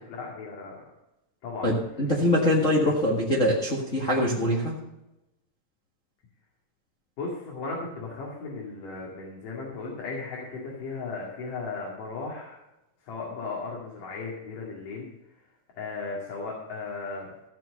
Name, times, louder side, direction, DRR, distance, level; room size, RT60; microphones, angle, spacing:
voice 1, 0.1-0.8 1.4-1.7 7.2-12.6 13.0-15.1 15.8-17.3, left 4 dB, 80° left, -3 dB, 3.9 m, -36 dB
voice 2, 1.6-4.8, left 1 dB, 30° left, -3 dB, 1.7 m, -23 dB
15.0 x 6.1 x 6.7 m, 0.93 s
omnidirectional pair, 3.8 m